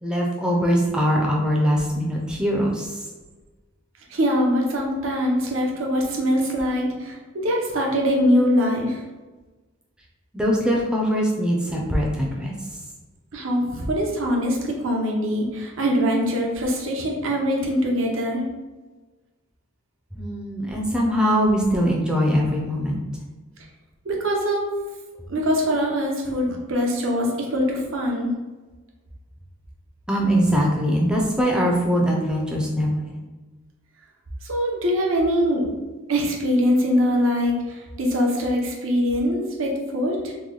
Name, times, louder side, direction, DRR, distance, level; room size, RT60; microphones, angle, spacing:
voice 1, 0.0-3.0 10.3-12.5 20.1-23.0 30.1-33.3, equal, 5° right, -2 dB, 0.4 m, -22 dB
voice 2, 4.1-9.0 13.3-18.4 24.0-24.7 25.3-28.3 34.4-35.7 36.1-40.3, equal, 60° right, 0 dB, 0.7 m, -23 dB
3.1 x 2.2 x 3.7 m, 1.2 s
head